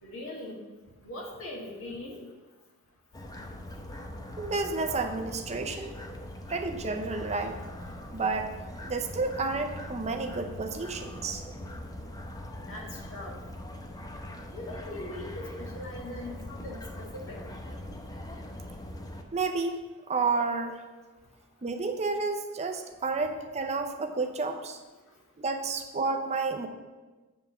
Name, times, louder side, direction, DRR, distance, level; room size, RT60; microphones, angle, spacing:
voice 1, 0.0-0.6 1.0-2.2 12.7-13.3 14.5-17.4, left 1 dB, 65° left, -1 dB, 1.9 m, -40 dB
sound 1, 3.1-19.2, left 1 dB, 15° left, 0.7 m, -41 dB
voice 2, 4.4-5.9 6.5-7.6 8.1-8.6 8.8-11.4 19.3-19.8 20.1-20.8 21.6-24.8 25.4-26.7, right 3 dB, 30° right, 6 dB, 0.6 m, -30 dB
9.6 x 3.6 x 6.9 m, 1.2 s
head